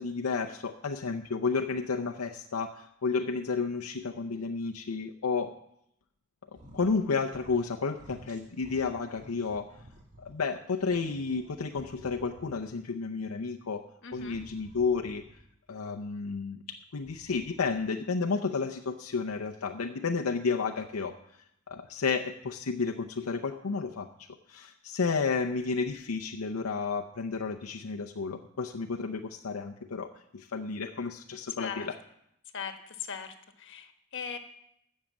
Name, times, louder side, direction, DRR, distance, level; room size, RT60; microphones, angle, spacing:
voice 1, 0.0-5.5 6.7-9.7 10.2-13.8 14.1-15.2 15.7-24.1 24.5-32.0, left 4 dB, 85° left, 4 dB, 0.7 m, -32 dB
sound 1, 6.5-7.0 7.3-7.7 8.0-10.3 10.8-12.7 14.1-15.5 16.9-18.0, right 1 dB, 35° right, 2.3 m, -53 dB
voice 2, 14.0-14.4 31.6-31.9 32.5-34.4, left 6 dB, 60° left, 7 dB, 1.3 m, -39 dB
15.0 x 6.5 x 7.3 m, 0.78 s
head